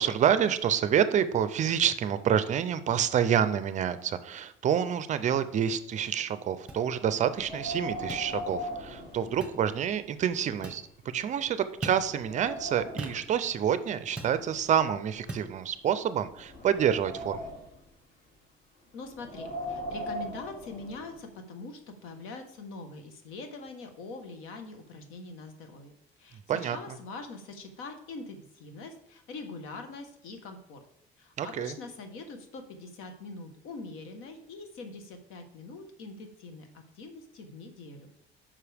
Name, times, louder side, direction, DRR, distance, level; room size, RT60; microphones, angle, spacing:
voice 1, 0.0-10.8 11.1-17.5 26.5-26.8 31.4-31.7, right 9 dB, 35° right, 13 dB, 0.4 m, -27 dB
sound 1, 6.7-6.8 8.1-8.3 9.4-9.6 10.6-10.9 11.8-12.1 13.0-13.2 14.2-14.4 15.3-15.5, right 2 dB, 5° right, 0.9 m, -38 dB
Wind, 7.3-9.9 10.3-10.4 11.0-11.1 11.6-13.2 14.1-15.6 16.2-17.8 19.1-21.2, equal, 50° left, 2.3 m, -39 dB
voice 2, 18.9-25.9 26.2-30.8 31.2-38.1, left 3 dB, 85° left, 6 dB, 1.2 m, -43 dB
9.5 x 5.7 x 3.4 m, 0.75 s
cardioid pair, 165°, 21 cm